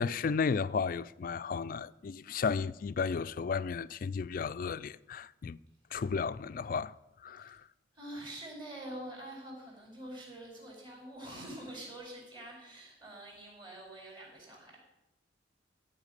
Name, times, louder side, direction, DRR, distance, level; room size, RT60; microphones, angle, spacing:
voice 1, 0.0-5.6 5.9-6.9 7.2-7.6, left 5 dB, 50° left, 0.3 m, -33 dB
voice 2, 7.9-14.8, right 1 dB, 25° right, 4.7 m, -46 dB
14.0 x 5.6 x 8.1 m
head